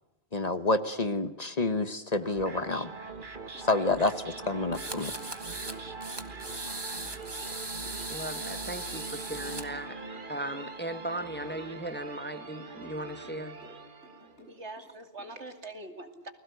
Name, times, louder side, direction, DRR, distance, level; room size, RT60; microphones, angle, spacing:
voice 1, 0.3-2.9 3.6-5.1, left 2 dB, 40° left, 1.2 m, -28 dB
sound 1, 2.2-14.4, right 4 dB, 50° right, 1.7 m, -43 dB
sound 2, 3.2-3.7 4.0-5.6 5.9-8.7 8.9-9.9 10.1-11.8 12.1-13.0 13.2-14.9 15.2-15.4, left 2 dB, 75° left, 8.5 m, -55 dB
sound 3, 4.7-5.8 6.0-9.6, right 2 dB, 20° right, 1.8 m, -39 dB
voice 2, 8.1-10.0 10.3-13.5, right 1 dB, 10° left, 1.1 m, -37 dB
voice 3, 14.5-16.3, right 2 dB, 80° right, 2.8 m, -43 dB
30.0 x 21.0 x 8.1 m
omnidirectional pair, 1.1 m